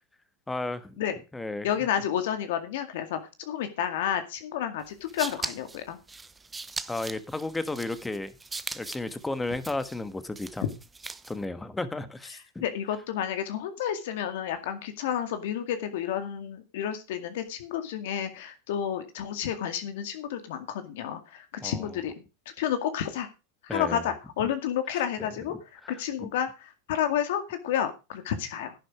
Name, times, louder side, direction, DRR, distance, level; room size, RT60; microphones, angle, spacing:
voice 1, 0.5-0.9 1.3-1.7 6.9-8.3 8.7-10.6 11.2-12.6 21.6-21.9 23.7-24.0 25.2-25.3 26.2-26.3, left 2 dB, 10° left, 1.3 m, -33 dB
voice 2, 1.6-6.0 12.6-22.1 22.6-23.3 23.6-26.5 26.9-28.7, left 9 dB, 75° left, 2.1 m, -30 dB
sound 1, 4.8-11.4, right 3 dB, 15° right, 0.7 m, -40 dB
11.0 x 10.5 x 4.8 m
hypercardioid pair, 110°, 0 cm